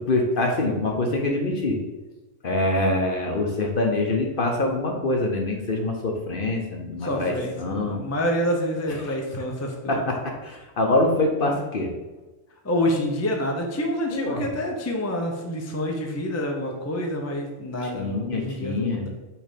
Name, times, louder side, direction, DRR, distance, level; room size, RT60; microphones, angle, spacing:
voice 1, 0.0-1.8 2.4-8.0 9.9-11.9 14.1-14.5 17.9-19.1, left 2 dB, 50° left, 1 dB, 0.9 m, -25 dB
voice 2, 7.0-10.1 12.6-19.1, equal, 20° left, 1 dB, 0.5 m, -27 dB
5.7 x 3.4 x 5.1 m, 1.1 s
omnidirectional pair, 1.4 m